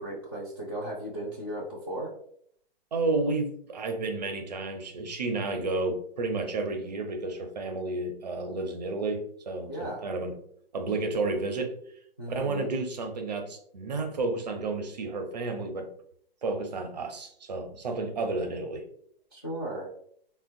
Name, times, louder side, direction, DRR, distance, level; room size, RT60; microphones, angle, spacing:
voice 1, 0.0-2.1 9.7-10.0 12.2-12.7 19.3-19.9, right 1 dB, 25° left, -7 dB, 0.3 m, -36 dB
voice 2, 2.9-10.4 10.7-11.7 12.3-15.9 16.4-18.8, right 3 dB, 45° right, 5 dB, 0.5 m, -31 dB
3.7 x 2.1 x 2.5 m, 0.65 s
hypercardioid pair, 180°, 30 cm